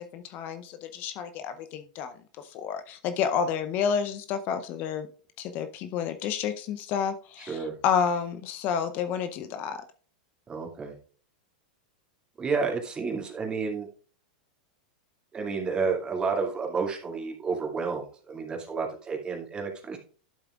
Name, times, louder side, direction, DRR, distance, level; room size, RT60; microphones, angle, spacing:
voice 1, 0.0-2.1 2.5-5.1 5.4-9.8, left 7 dB, 45° left, 10 dB, 0.7 m, -30 dB
voice 2, 10.5-10.9 12.4-13.9 15.3-20.0, right 5 dB, 20° right, 0 dB, 2.4 m, -30 dB
12.0 x 7.4 x 2.4 m, 0.41 s
hypercardioid pair, 115°, 4 cm